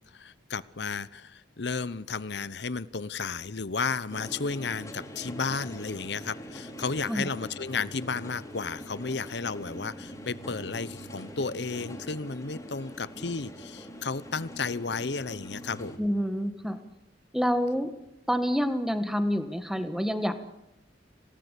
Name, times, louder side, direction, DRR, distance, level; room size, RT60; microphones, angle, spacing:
voice 1, 0.1-16.0, left 4 dB, 65° left, 17 dB, 0.9 m, -33 dB
sound 1, 4.1-16.0, equal, 15° left, 4.2 m, -43 dB
voice 2, 16.0-16.8 17.3-17.9 18.3-20.4, equal, ahead, 9 dB, 1.6 m, -27 dB
26.0 x 18.0 x 8.3 m, 0.87 s
head